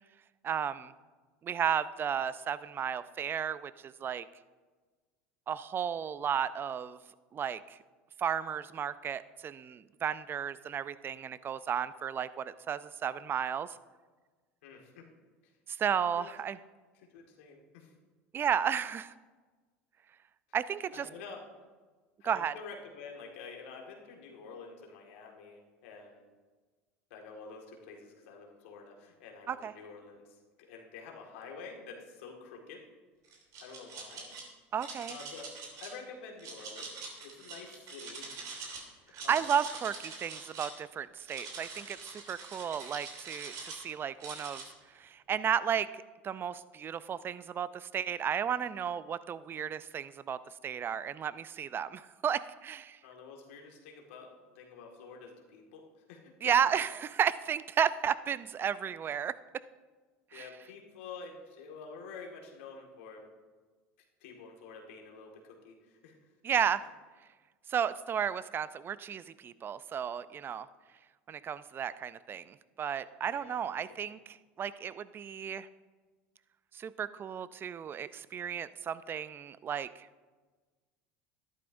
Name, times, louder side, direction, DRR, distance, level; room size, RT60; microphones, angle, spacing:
voice 1, 0.4-0.9 1.4-4.2 5.5-7.0 7.3-7.8 8.2-13.8 15.8-16.6 18.3-19.1 20.5-21.1 22.2-22.5 29.5-29.7 34.7-35.2 39.3-44.6 44.9-45.9 46.2-50.4 50.6-53.0 56.4-59.3 60.3-60.5 66.4-66.8 67.7-70.7 71.3-74.2 74.6-75.7 76.7-80.1, right 8 dB, 35° right, 16 dB, 0.4 m, -33 dB
voice 2, 14.6-15.1 15.4-15.5 16.1-16.3 16.9-17.9 20.9-21.4 22.2-26.2 27.1-32.8 33.6-34.3 35.1-35.5 35.8-38.4 38.9-39.5 53.0-56.3 60.3-63.3 64.2-66.3 73.3-73.6, left 4 dB, 75° left, 1 dB, 1.8 m, -48 dB
sound 1, 33.3-34.4 34.8-35.9 36.4-38.8 39.1-40.8 41.2-43.8 44.2-44.6, right 4 dB, 60° right, 3.2 m, -44 dB
13.0 x 11.0 x 2.6 m, 1.4 s
hypercardioid pair, 85°, 7 cm